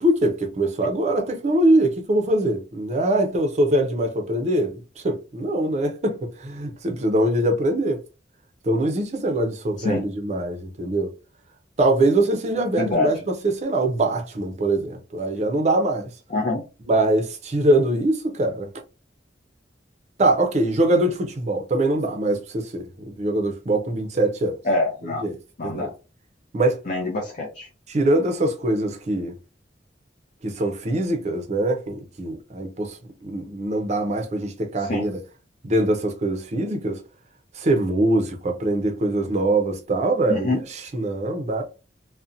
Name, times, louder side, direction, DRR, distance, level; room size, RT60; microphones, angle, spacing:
voice 1, 0.0-8.0 8.6-11.1 11.8-16.1 16.9-18.7 20.2-24.6 25.2-25.3 25.6-25.9 26.5-26.8 27.9-29.4 30.4-35.2 35.6-37.0 37.5-40.6 40.9-41.6, right 1 dB, 40° right, 0.5 m, -23 dB
voice 2, 12.8-13.1 16.3-16.6 24.6-25.2 25.6-25.9 26.9-27.7 34.8-35.1 40.3-40.6, left 2 dB, 45° left, 0.5 m, -25 dB
2.6 x 2.1 x 2.4 m
head